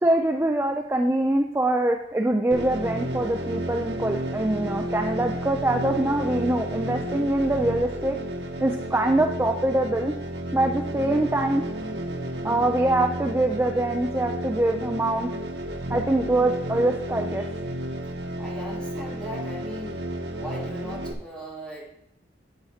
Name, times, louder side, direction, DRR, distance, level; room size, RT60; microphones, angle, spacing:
voice 1, 0.0-8.2 8.6-10.1 10.5-11.6 12.4-15.3 15.9-17.4, right 1 dB, 15° right, 3 dB, 0.4 m, -24 dB
sound 1, 2.5-21.1, right 1 dB, 65° right, 0.8 m, -32 dB
voice 2, 18.4-20.1 20.4-22.0, equal, 5° left, -6 dB, 2.5 m, -38 dB
8.7 x 8.4 x 2.8 m, 0.81 s
head